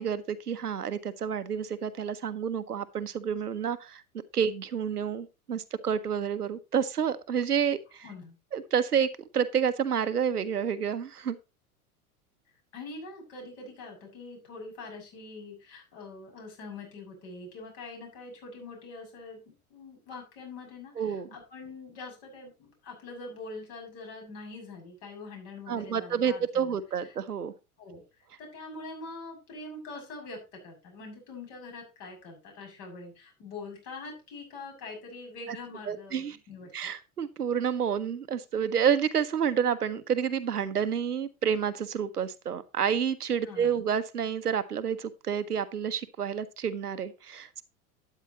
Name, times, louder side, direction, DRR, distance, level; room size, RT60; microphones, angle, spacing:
voice 1, 0.0-4.0 4.3-8.0 8.5-9.1 9.3-11.4 21.0-21.3 25.7-27.5 35.5-35.6 35.9-36.4 36.7-47.6, right 7 dB, 85° right, 12 dB, 1.0 m, -29 dB
voice 2, 8.0-8.4 12.7-27.1 27.8-28.0 28.4-36.9 43.4-43.8, left 3 dB, 50° left, 1 dB, 7.2 m, -44 dB
12.0 x 9.2 x 3.0 m, 0.28 s
figure-of-eight pair, 85°, 45 cm